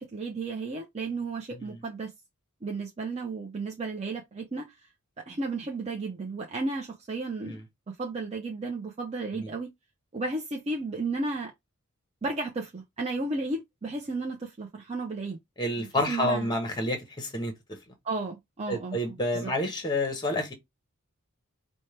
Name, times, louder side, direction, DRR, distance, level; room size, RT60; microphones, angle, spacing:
voice 1, 0.0-2.1 2.6-4.8 5.3-7.6 7.9-9.7 10.1-11.5 12.2-15.4 15.8-16.6 18.0-19.5, right 3 dB, 30° right, 0.5 m, -33 dB
voice 2, 15.6-17.5 18.7-20.5, left 1 dB, 20° left, 0.8 m, -29 dB
4.3 x 2.1 x 3.3 m
head